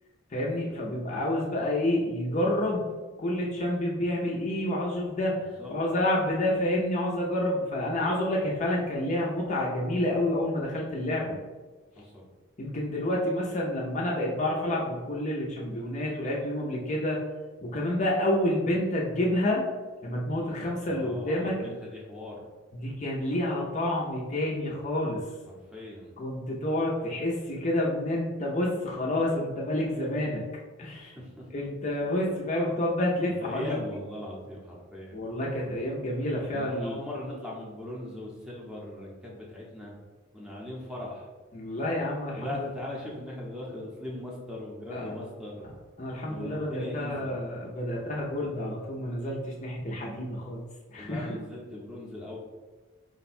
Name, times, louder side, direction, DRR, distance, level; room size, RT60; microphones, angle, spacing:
voice 1, 0.3-2.8 3.2-5.4 5.7-11.4 12.6-17.2 17.6-19.6 20.0-21.7 22.7-25.2 26.2-30.4 30.8-31.1 31.5-33.7 35.1-37.0 41.5-42.5 44.9-45.1 46.0-50.6 50.9-51.4, left 1 dB, 35° left, -3 dB, 0.5 m, -29 dB
voice 2, 5.3-5.8 12.0-12.3 20.8-22.5 25.5-26.1 31.0-31.5 33.4-35.2 36.5-39.9 40.3-41.3 42.4-45.7 46.2-47.4 51.0-52.4, left 1 dB, 5° right, -4 dB, 0.7 m, -39 dB
4.7 x 2.2 x 4.2 m, 1.3 s
head